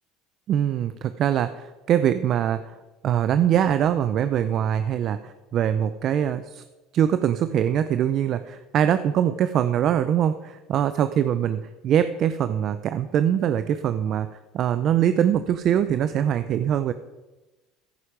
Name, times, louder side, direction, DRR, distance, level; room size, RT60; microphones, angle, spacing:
voice 1, 0.5-2.7 3.0-6.6 6.9-14.3 14.5-16.9, right 9 dB, 50° right, 11 dB, 0.7 m, -23 dB
14.5 x 10.0 x 5.1 m, 1.1 s
supercardioid pair, 110°, 0 cm